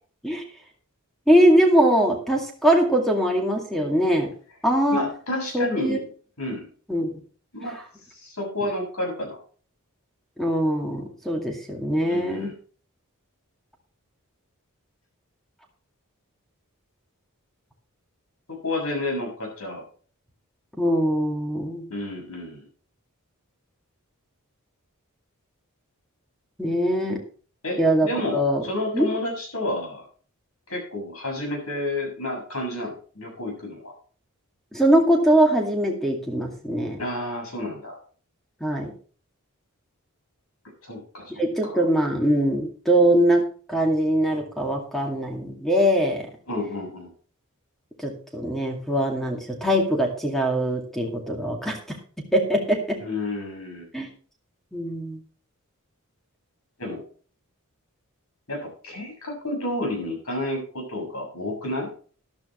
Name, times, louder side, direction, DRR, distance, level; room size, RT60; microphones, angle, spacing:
voice 1, 1.3-4.3 4.6-5.0 5.5-6.0 6.9-7.2 10.4-12.5 20.8-21.9 26.6-27.2 27.8-28.6 28.9-29.1 34.7-37.0 38.6-38.9 41.4-43.4 43.7-46.3 48.0-52.0 52.3-53.0 53.9-54.1 54.7-55.2, right 1 dB, ahead, 1 dB, 2.2 m, -22 dB
voice 2, 4.9-6.1 6.4-6.7 7.5-7.7 8.1-9.4 12.0-12.5 18.5-19.8 21.9-22.6 27.6-28.4 28.6-30.0 30.7-33.9 37.0-38.0 40.8-41.3 41.6-41.8 46.5-47.1 53.0-53.8 56.8-57.0 58.5-61.9, left 1 dB, 70° left, 2 dB, 6.9 m, -30 dB
14.0 x 11.5 x 3.1 m, 0.41 s
head